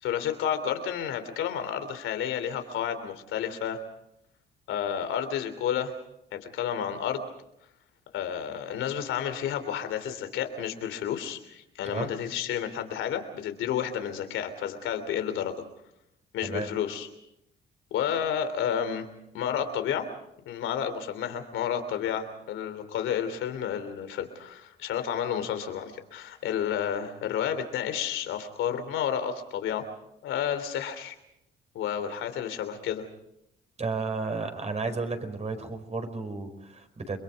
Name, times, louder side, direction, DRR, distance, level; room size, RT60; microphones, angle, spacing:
voice 1, 0.0-3.8 4.7-5.9 6.3-7.3 8.1-15.6 16.3-17.1 17.9-19.1 19.3-20.1 20.4-29.9 30.2-31.1 31.7-33.1, left 9 dB, 90° left, 9 dB, 3.2 m, -31 dB
voice 2, 33.8-37.2, right 3 dB, 35° right, 7 dB, 4.9 m, -33 dB
29.5 x 22.5 x 5.3 m, 0.82 s
cardioid pair, 90°, 20 cm